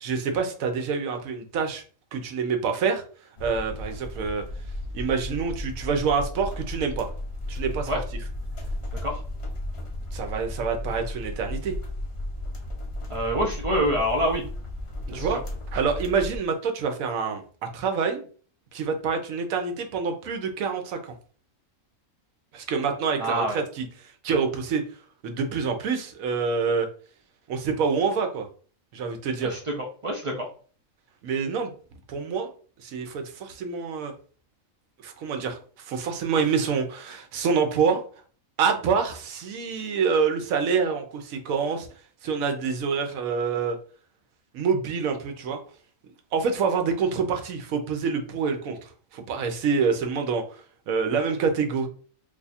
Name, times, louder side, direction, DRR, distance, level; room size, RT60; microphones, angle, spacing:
voice 1, 0.0-1.8 2.1-3.0 3.4-4.4 4.9-7.1 7.5-7.9 10.1-11.7 15.1-15.4 15.7-18.2 18.7-21.1 22.5-24.8 25.2-26.9 27.5-28.5 28.9-29.6 31.2-31.7 32.1-32.5 32.8-34.1 35.0-38.0 38.6-41.9 42.2-43.8 44.5-45.6 46.3-50.4 50.9-51.9, right 5 dB, 80° right, 5 dB, 1.0 m, -26 dB
sound 1, 3.4-16.4, left 1 dB, 40° left, 0.4 m, -34 dB
voice 2, 13.1-14.4 15.1-15.4 23.2-23.6 29.4-30.5, equal, 55° right, 0 dB, 0.3 m, -26 dB
2.7 x 2.3 x 4.0 m, 0.42 s
omnidirectional pair, 1.5 m